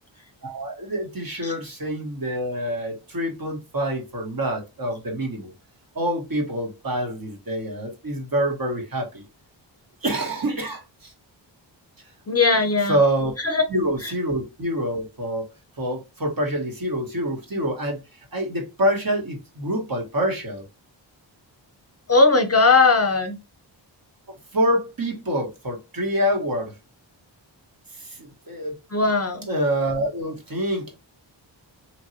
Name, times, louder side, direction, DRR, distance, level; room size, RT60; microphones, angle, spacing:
voice 1, 0.4-5.5 5.9-9.3 10.0-11.1 12.9-13.3 13.7-15.5 15.8-18.0 18.3-20.6 24.5-26.7 28.0-28.7 29.5-30.9, equal, 45° right, 1.3 m, -26 dB
voice 2, 12.3-13.0 13.4-13.6 14.0-14.1 22.1-23.4 28.9-29.5, left 3 dB, 30° left, 0.7 m, -18 dB
3.1 x 2.6 x 2.7 m
cardioid pair, 50°, 47 cm